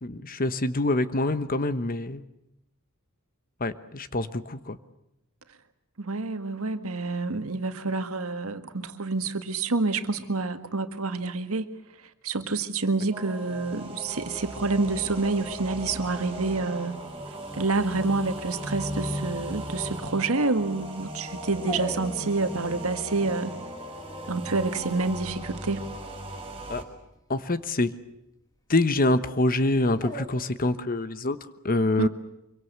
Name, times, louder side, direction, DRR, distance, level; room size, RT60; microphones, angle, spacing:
voice 1, 0.0-2.2 3.6-4.8 26.7-26.8 27.3-27.9 28.7-31.4 31.6-32.1, left 2 dB, 40° left, 12 dB, 1.1 m, -25 dB
voice 2, 6.0-11.7 12.2-17.0 17.5-23.6 24.3-25.8 32.0-32.1, right 3 dB, 70° right, 8 dB, 1.8 m, -28 dB
sound 1, 13.1-26.8, right 1 dB, 25° right, 4.6 m, -37 dB
Dog, 14.7-30.3, equal, 15° left, 2.3 m, -45 dB
25.5 x 23.5 x 8.1 m, 0.87 s
head